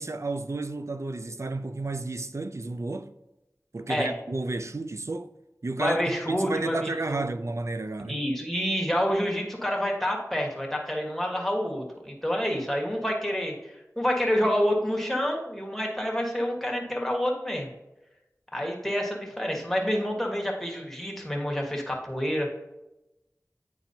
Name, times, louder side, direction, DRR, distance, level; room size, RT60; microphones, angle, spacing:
voice 1, 0.0-3.1 3.7-5.3 5.6-6.0 6.3-8.2, right 2 dB, 55° right, 0.4 m, -32 dB
voice 2, 5.8-7.2 8.1-17.7 18.5-22.5, equal, 5° left, 1.4 m, -28 dB
9.1 x 4.4 x 2.7 m
wide cardioid pair, 45°, 6 cm